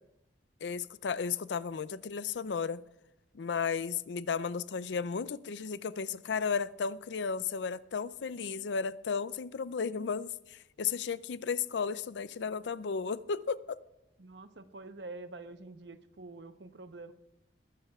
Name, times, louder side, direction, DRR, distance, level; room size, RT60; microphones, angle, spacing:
voice 1, 0.6-2.8 3.3-13.8, left 6 dB, 75° left, 0.4 m, -34 dB
voice 2, 14.2-17.1, right 2 dB, 75° right, 0.9 m, -46 dB
21.5 x 14.5 x 2.4 m
head